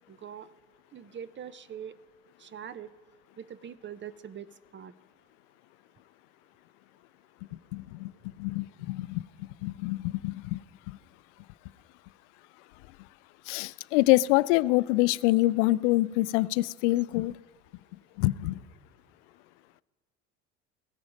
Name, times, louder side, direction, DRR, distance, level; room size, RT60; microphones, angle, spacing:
voice 1, 0.1-0.5 0.9-2.0 2.4-2.9 3.4-4.5 4.7-4.9, right 9 dB, 30° right, 17 dB, 0.8 m, -42 dB
voice 2, 7.7-8.1 8.4-9.2 9.6-10.6 10.9-11.0 13.5-17.3 18.2-18.6, left 19 dB, 70° left, 20 dB, 0.5 m, -25 dB
16.5 x 14.0 x 5.2 m, 1.5 s
hypercardioid pair, 70°, 37 cm